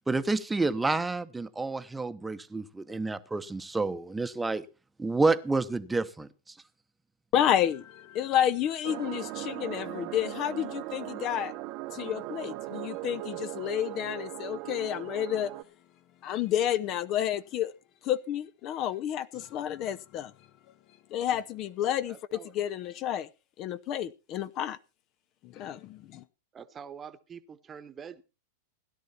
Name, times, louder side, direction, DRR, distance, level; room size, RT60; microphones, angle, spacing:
voice 1, 0.1-4.6 5.0-6.3, right 3 dB, 10° right, 0.9 m, -29 dB
voice 2, 7.3-11.5 11.9-15.5 16.2-17.7 18.0-20.3 21.1-23.3 23.6-24.8 25.4-26.2, left 11 dB, 40° left, 0.7 m, -30 dB
sound 1, 8.8-15.6, right 16 dB, 50° right, 0.9 m, -39 dB
voice 3, 22.1-22.5 26.5-28.2, right 7 dB, 25° right, 1.1 m, -45 dB
16.5 x 11.0 x 4.3 m
hypercardioid pair, 105°, 0 cm